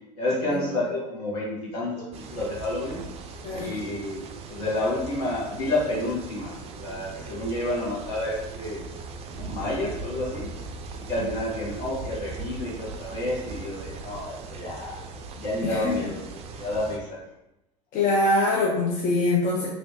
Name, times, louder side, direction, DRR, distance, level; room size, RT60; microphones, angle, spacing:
voice 1, 0.2-3.0 3.5-8.9 9.3-10.5 11.1-15.0 15.3-16.2 16.5-17.2, left 1 dB, 65° left, -6 dB, 1.5 m, -30 dB
sound 1, 2.1-17.0, right 4 dB, 30° right, 0.4 m, -39 dB
voice 2, 3.4-3.8 15.6-16.1 17.9-19.7, left 2 dB, 40° left, -3 dB, 0.6 m, -24 dB
3.2 x 2.9 x 2.7 m, 0.92 s
figure-of-eight pair, 75°, 21 cm